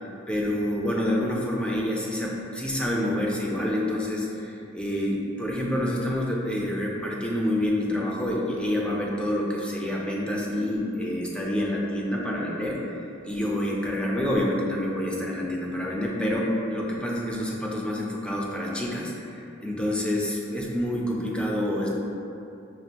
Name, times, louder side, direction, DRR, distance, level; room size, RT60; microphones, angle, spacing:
voice 1, 0.3-12.8 13.2-21.9, left 1 dB, 5° left, -3 dB, 0.4 m, -27 dB
5.2 x 2.4 x 2.8 m, 2.7 s
head